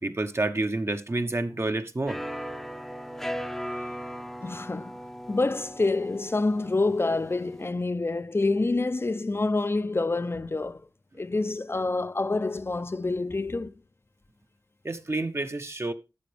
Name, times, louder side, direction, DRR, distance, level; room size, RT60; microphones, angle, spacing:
voice 1, 0.0-2.2 14.8-15.9, right 2 dB, 40° right, 1.1 m, -29 dB
sound 1, 2.1-7.7, equal, 5° left, 0.7 m, -38 dB
voice 2, 4.4-4.9 5.3-10.8 11.2-13.7, left 3 dB, 35° left, 0.6 m, -27 dB
12.5 x 8.5 x 3.4 m
wide cardioid pair, 75°, 7 cm